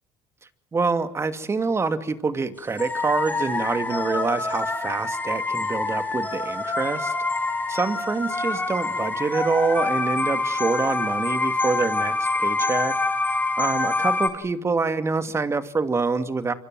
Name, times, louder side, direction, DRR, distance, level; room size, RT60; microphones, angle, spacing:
voice 1, 0.7-7.1 7.7-12.9 13.6-16.5, right 4 dB, 25° right, 10 dB, 2.6 m, -26 dB
sound 1, 2.8-14.3, left 3 dB, 15° left, 6.9 m, -26 dB
25.5 x 25.0 x 7.8 m, 0.79 s
supercardioid pair, 85°, 10 cm